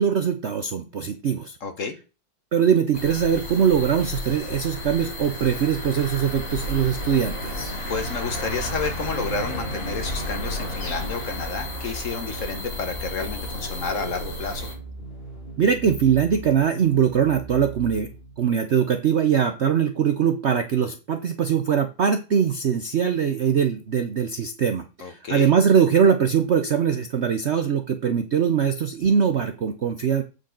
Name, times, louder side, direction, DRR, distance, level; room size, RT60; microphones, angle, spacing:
voice 1, 0.0-1.6 2.5-7.8 15.6-18.1 18.4-30.2, right 7 dB, 90° right, 0.6 m, -22 dB
voice 2, 1.6-2.0 7.9-14.7 25.0-25.5, left 4 dB, 50° left, 1.2 m, -30 dB
sound 1, 2.9-14.7, left 1 dB, 70° left, 4.4 m, -32 dB
sound 2, 7.8-18.5, right 2 dB, 30° left, 2.4 m, -39 dB
8.1 x 6.5 x 3.8 m
omnidirectional pair, 2.1 m